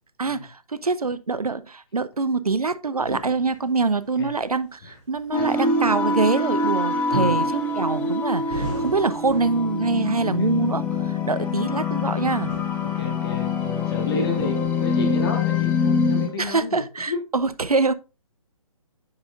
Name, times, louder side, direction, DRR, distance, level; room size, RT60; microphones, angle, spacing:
voice 1, 0.2-12.5 16.4-17.9, right 3 dB, 80° right, 0.6 m, -24 dB
sound 1, 3.0-4.0 4.4-4.5 4.9-5.0 7.1-10.2 10.6-11.1 11.5-13.3 14.0-15.2, right 1 dB, 50° right, 2.8 m, -36 dB
sound 2, 5.3-16.3, left 3 dB, 10° left, 0.8 m, -25 dB
voice 2, 13.0-17.2, left 4 dB, 40° left, 2.2 m, -31 dB
9.4 x 5.6 x 2.4 m
figure-of-eight pair, 140°, 19 cm